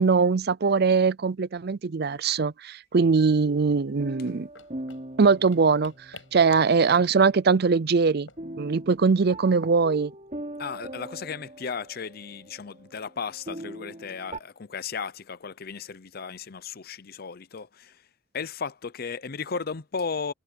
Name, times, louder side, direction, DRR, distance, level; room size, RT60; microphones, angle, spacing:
voice 1, 0.0-4.5 5.2-5.9 6.3-8.3 8.6-10.1, right 4 dB, 55° right, 0.5 m, -21 dB
sound 1, 3.5-14.4, right 1 dB, 35° right, 4.6 m, -42 dB
sound 2, 4.1-9.4, left 4 dB, 85° left, 7.7 m, -51 dB
voice 2, 10.6-18.0 18.3-20.3, left 5 dB, 50° left, 0.7 m, -35 dB
head